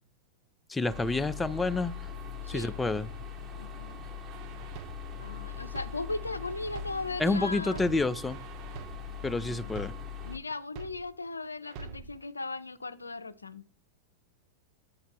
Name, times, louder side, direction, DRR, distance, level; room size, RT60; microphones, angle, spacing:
voice 1, 0.7-1.9 2.5-3.1 7.2-8.4 9.2-9.9, left 3 dB, 10° left, 0.4 m, -29 dB
sound 1, 0.9-10.4, left 6 dB, 30° right, 1.2 m, -41 dB
voice 2, 2.4-2.8 3.6-4.0 5.2-7.8 9.5-9.9 10.3-13.6, left 3 dB, 80° left, 0.4 m, -37 dB
sound 2, 4.3-7.3 7.6-11.3 11.6-12.2, right 4 dB, 45° right, 0.6 m, -46 dB
8.2 x 4.3 x 3.9 m
figure-of-eight pair, 90°, 0 cm